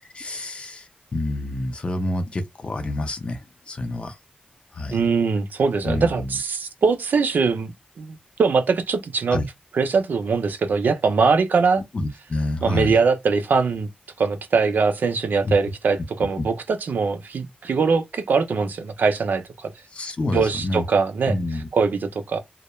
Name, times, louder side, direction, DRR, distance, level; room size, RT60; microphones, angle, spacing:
voice 1, 0.1-0.9 1.1-4.2 4.7-5.0 5.8-6.3 9.3-9.5 11.9-12.9 15.4-15.5 16.4-16.5 19.9-20.9 21.3-21.7, left 2 dB, 35° left, 0.5 m, -27 dB
voice 2, 4.9-9.4 9.7-11.8 12.6-13.9 14.2-19.7 20.3-21.4 21.7-22.4, right 5 dB, 85° right, 0.4 m, -22 dB
2.2 x 2.0 x 2.9 m
wide cardioid pair, 135°, 3 cm